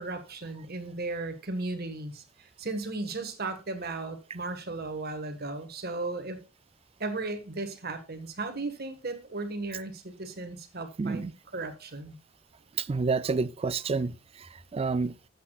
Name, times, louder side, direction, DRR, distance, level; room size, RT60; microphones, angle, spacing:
voice 1, 0.0-6.4 7.0-11.2 11.5-12.2, right 3 dB, 50° right, 1.6 m, -36 dB
voice 2, 11.0-11.3 12.8-14.1 14.7-15.1, right 4 dB, 30° right, 0.4 m, -28 dB
13.0 x 8.4 x 2.4 m
head